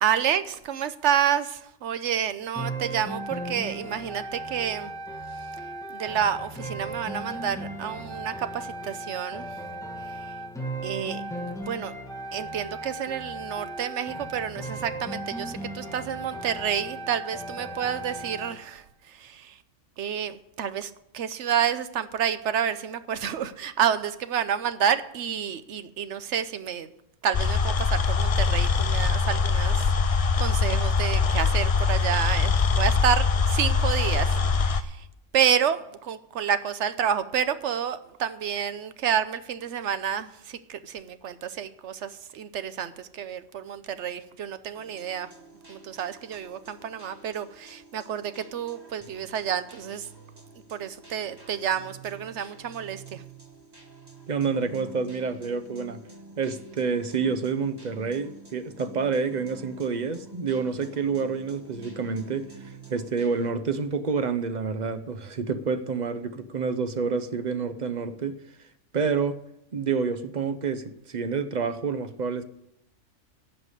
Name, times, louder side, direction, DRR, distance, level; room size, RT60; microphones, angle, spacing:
voice 1, 0.0-4.9 5.9-9.5 10.8-11.9 12.3-18.8 19.2-19.5 20.0-26.9 27.2-29.8 30.1-34.3 34.6-35.0 35.3-45.3 45.7-50.1 50.7-53.2, right 8 dB, 70° right, 12 dB, 1.1 m, -29 dB
sound 1, 2.6-18.6, right 1 dB, 5° left, 1.4 m, -36 dB
sound 2, 27.3-34.8, left 4 dB, 45° left, 0.5 m, -23 dB
sound 3, 44.7-63.5, right 3 dB, 20° right, 1.9 m, -48 dB
voice 2, 54.3-56.0 56.4-68.4 68.9-69.4 69.7-72.4, right 5 dB, 40° right, 11 dB, 0.8 m, -28 dB
16.0 x 5.8 x 8.2 m, 0.81 s
omnidirectional pair, 1.3 m